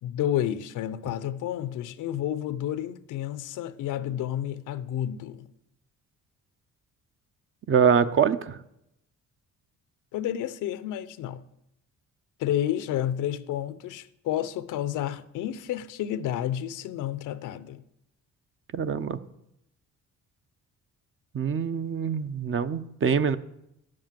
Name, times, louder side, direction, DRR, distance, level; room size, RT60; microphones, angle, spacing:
voice 1, 0.0-5.5 10.1-11.4 12.4-17.8, left 11 dB, 85° left, 0.7 m, -30 dB
voice 2, 7.7-8.6 18.7-19.2 21.3-23.4, right 7 dB, 45° right, 0.7 m, -24 dB
10.5 x 7.8 x 7.5 m
cardioid pair, 90°, 30 cm